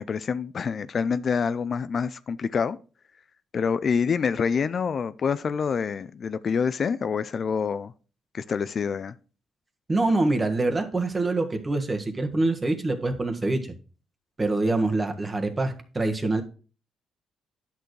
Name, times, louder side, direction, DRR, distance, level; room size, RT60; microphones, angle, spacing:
voice 1, 0.0-2.8 3.5-7.9 8.3-9.1, left 6 dB, 50° left, 0.4 m, -26 dB
voice 2, 9.9-13.7 14.4-16.4, right 2 dB, 25° right, 1.5 m, -25 dB
10.0 x 6.7 x 3.2 m
cardioid pair, 90°, 0 cm